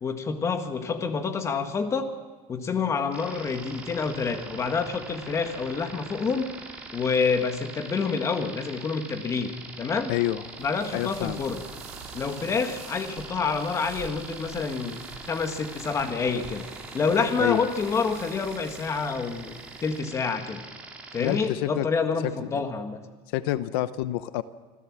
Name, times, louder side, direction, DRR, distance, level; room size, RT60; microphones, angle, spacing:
voice 1, 0.0-2.1 2.5-6.5 6.9-9.5 9.8-10.1 10.6-11.6 12.1-15.0 15.3-16.7 16.9-19.5 19.8-20.6 21.1-23.0, left 5 dB, 25° left, 7 dB, 1.7 m, -27 dB
sound 1, 3.1-21.5, right 3 dB, 10° right, 2.9 m, -42 dB
voice 2, 10.1-10.4 10.9-11.4 17.4-17.6 21.2-21.9 22.2-22.6 23.3-24.4, left 15 dB, 90° left, 14 dB, 0.8 m, -28 dB
sound 2, 10.5-20.0, right 7 dB, 65° right, 7.7 m, -47 dB
25.5 x 14.5 x 7.5 m, 1.4 s
cardioid pair, 150°, 12 cm